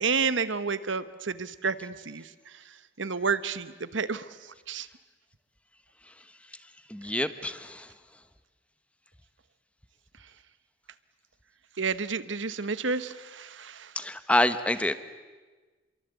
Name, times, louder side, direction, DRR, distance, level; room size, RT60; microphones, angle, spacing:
voice 1, 0.0-2.3 3.0-4.2 4.7-4.9 11.8-13.9, right 5 dB, 75° right, 13 dB, 1.1 m, -30 dB
voice 2, 6.9-7.9 13.9-14.9, left 1 dB, 5° left, 11 dB, 1.1 m, -27 dB
28.5 x 23.0 x 8.2 m, 1.3 s
head